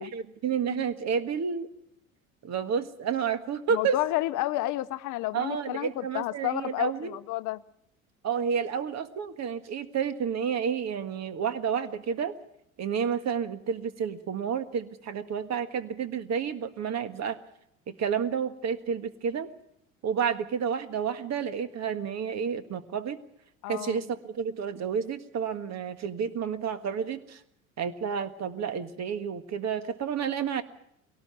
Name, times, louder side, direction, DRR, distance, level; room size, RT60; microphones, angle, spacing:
voice 1, 0.0-1.7 2.4-4.0 5.3-7.1 8.2-12.3 12.8-17.4 17.9-19.5 20.0-23.2 23.7-27.4 27.8-30.6, right 7 dB, 40° right, 1.7 m, -30 dB
voice 2, 3.7-7.6 23.6-24.0, left 16 dB, 50° left, 0.8 m, -31 dB
22.0 x 18.0 x 7.0 m
hypercardioid pair, 70°, 41 cm